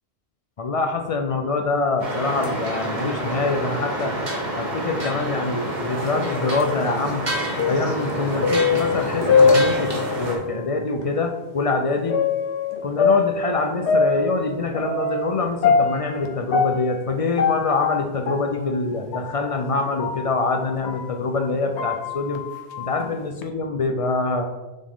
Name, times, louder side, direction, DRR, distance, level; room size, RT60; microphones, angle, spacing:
voice 1, 0.6-4.1 4.6-7.2 7.7-9.9 10.2-12.2 12.8-22.4 22.8-24.4, left 3 dB, 45° left, 4 dB, 0.4 m, -25 dB
sound 1, 2.0-10.4, right 1 dB, 45° right, 1.3 m, -28 dB
sound 2, 5.9-10.5 11.0-11.1 12.1-21.1 21.5-23.4, left 5 dB, 80° left, 1.0 m, -23 dB
7.3 x 3.6 x 3.6 m, 1.1 s
omnidirectional pair, 1.1 m